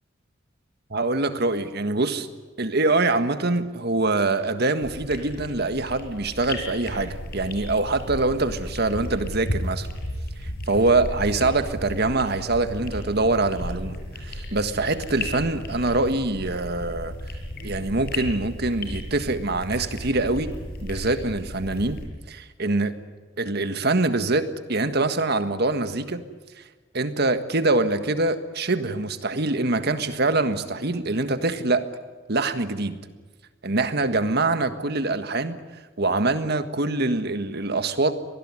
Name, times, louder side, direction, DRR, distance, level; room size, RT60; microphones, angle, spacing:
voice 1, 0.9-2.3 2.6-9.9 10.4-17.1 17.6-20.5 20.8-22.0 22.3-23.0 23.4-26.2 26.9-31.8 32.3-33.0 33.6-35.6 36.0-38.1, right 2 dB, 55° right, 10 dB, 1.6 m, -24 dB
sound 1, 4.8-22.0, left 1 dB, 55° left, 6.7 m, -34 dB
24.5 x 20.0 x 9.8 m, 1.4 s
head